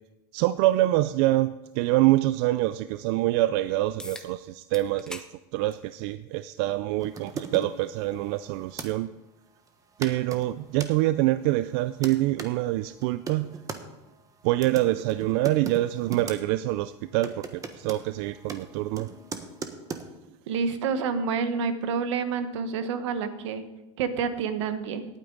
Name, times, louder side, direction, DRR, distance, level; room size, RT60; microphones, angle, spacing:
voice 1, 0.3-5.2 5.5-9.1 10.0-13.5 14.4-19.1, right 16 dB, 65° right, 14 dB, 0.4 m, -25 dB
sound 1, 4.0-4.3 4.7-5.3 5.7-5.9 6.9-7.0 11.9-12.0, left 2 dB, 5° left, 0.9 m, -41 dB
sound 2, 7.0-8.9 9.7-9.8 10.0-10.9 11.6-12.5 13.0-13.8 14.5-16.4 16.7-16.9 17.2-20.1, right 5 dB, 25° right, 1.2 m, -39 dB
voice 2, 20.5-23.6 24.0-25.0, right 5 dB, 85° right, 10 dB, 1.3 m, -28 dB
18.0 x 8.9 x 3.9 m, 1.0 s
supercardioid pair, 120°, 15 cm